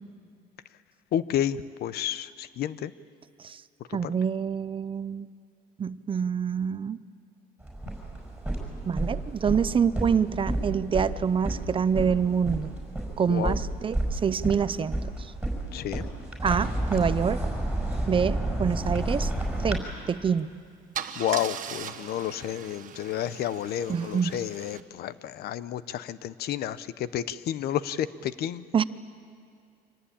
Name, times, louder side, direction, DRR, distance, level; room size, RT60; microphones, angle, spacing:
voice 1, 1.1-2.9 3.9-4.1 13.3-13.6 15.7-16.1 21.2-28.8, left 11 dB, 70° left, 16 dB, 0.8 m, -31 dB
voice 2, 3.9-5.3 5.8-7.0 8.9-12.7 13.2-15.3 16.4-17.4 18.0-19.3 19.6-20.5 23.9-24.3 28.7-28.8, right 7 dB, 30° right, 15 dB, 0.6 m, -26 dB
sound 1, 7.6-19.8, right 1 dB, 5° right, 6.0 m, -31 dB
Car / Engine starting / Idling, 20.2-20.4 20.9-24.8, right 8 dB, 50° right, 1.3 m, -39 dB
25.5 x 18.5 x 8.8 m, 2.3 s
cardioid pair, 110°, 17 cm